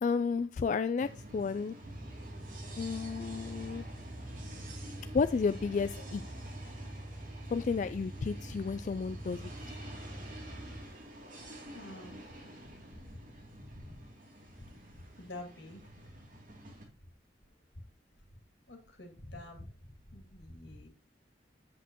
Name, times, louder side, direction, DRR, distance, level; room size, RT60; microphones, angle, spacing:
voice 1, 0.0-1.7 2.8-3.9 5.1-6.2 7.5-9.5, left 5 dB, 45° left, 0.3 m, -32 dB
sound 1, 1.0-16.8, right 1 dB, 50° right, 2.8 m, -50 dB
sound 2, 1.8-10.8, right 1 dB, ahead, 5.2 m, -45 dB
voice 2, 11.7-12.2 13.8-13.9 15.2-15.8 16.6-16.7 18.7-19.7 20.1-20.9, left 1 dB, 80° left, 2.4 m, -47 dB
8.2 x 8.0 x 3.0 m
head